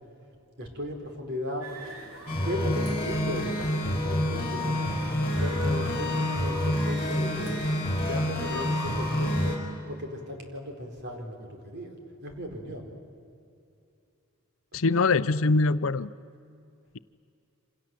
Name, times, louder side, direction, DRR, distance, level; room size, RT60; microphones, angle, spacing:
voice 1, 0.6-1.7 2.4-4.9 5.4-7.6 8.0-9.6 9.9-11.9 12.2-12.9 14.7-14.8, equal, 50° right, 3 dB, 4.3 m, -36 dB
sound 1, 1.6-9.3, right 1 dB, 70° right, 4.3 m, -44 dB
sound 2, 2.3-9.6, left 1 dB, 25° left, 4.9 m, -28 dB
voice 2, 14.7-16.1, left 3 dB, 65° left, 15 dB, 0.6 m, -23 dB
28.0 x 26.5 x 7.7 m, 2.5 s
head